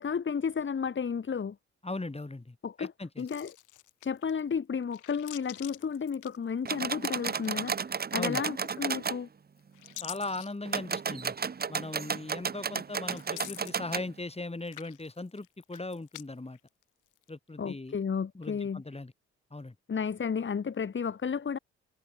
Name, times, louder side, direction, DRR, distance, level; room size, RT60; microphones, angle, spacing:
voice 1, 0.0-1.6 2.6-2.9 3.2-3.5 4.0-9.3 17.6-18.8 19.9-21.6, left 6 dB, 40° left, 1.5 m, -32 dB
voice 2, 1.8-3.3 8.2-8.4 10.0-11.3 11.7-16.6 17.3-18.0 18.3-19.1 19.5-19.7, left 2 dB, 20° left, 5.9 m, -39 dB
sound 1, 3.2-4.4 4.8-6.9 7.2-7.9 8.7-9.2 9.6-11.2 11.8-11.9 13.1-14.4 14.6-16.2 16.5-17.3, left 16 dB, 85° left, 3.1 m, -47 dB
sound 2, 6.7-9.2 10.7-14.1, right 6 dB, 30° right, 0.9 m, -33 dB
supercardioid pair, 55°, 30 cm